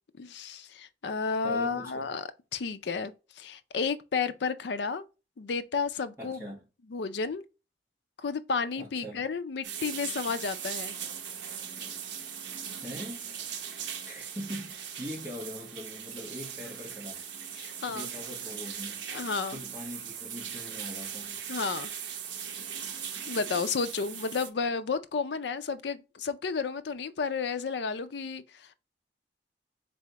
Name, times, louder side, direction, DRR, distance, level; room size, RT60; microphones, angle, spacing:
voice 1, 0.2-5.0 5.4-6.5 6.9-7.4 8.2-11.0 17.6-18.1 19.1-19.6 21.5-21.9 23.3-28.7, left 5 dB, 75° left, 0.5 m, -32 dB
voice 2, 1.4-2.1 6.2-6.6 8.7-9.2 12.8-13.3 13.6-17.2 17.9-19.0 19.5-21.4, equal, 15° right, 1.3 m, -42 dB
sound 1, 9.6-24.5, right 8 dB, 90° right, 0.7 m, -39 dB
4.1 x 3.4 x 2.9 m
head